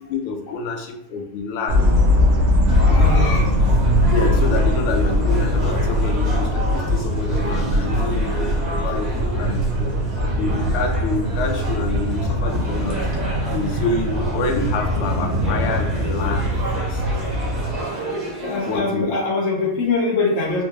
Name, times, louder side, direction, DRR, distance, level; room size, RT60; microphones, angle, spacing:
voice 1, 0.1-1.9 4.0-9.9 10.4-13.0 13.5-17.0 18.7-19.1, left 3 dB, 85° left, 4 dB, 1.5 m, -27 dB
sound 1, 1.7-17.7, left 1 dB, 55° right, 0.9 m, -20 dB
voice 2, 2.7-3.5 18.4-20.6, left 3 dB, 65° left, -2 dB, 0.7 m, -23 dB
sound 2, 2.7-18.8, right 2 dB, 30° right, 0.8 m, -32 dB
4.3 x 2.3 x 3.0 m, 0.79 s
omnidirectional pair, 2.4 m